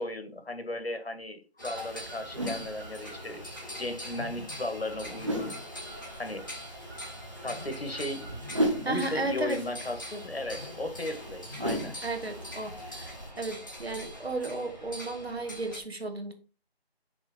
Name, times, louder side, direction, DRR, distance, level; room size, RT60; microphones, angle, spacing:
voice 1, 0.0-3.4 3.8-5.5 6.2-6.5 7.4-8.4 8.8-11.9, left 1 dB, 70° left, 1.7 m, -36 dB
sound 1, 1.6-15.8, left 1 dB, 20° left, 1.6 m, -43 dB
sound 2, 1.7-13.3, equal, 30° right, 1.2 m, -38 dB
voice 2, 8.8-9.6 12.0-16.3, right 2 dB, 70° right, 2.1 m, -34 dB
6.2 x 4.4 x 5.3 m
figure-of-eight pair, 180°, 32 cm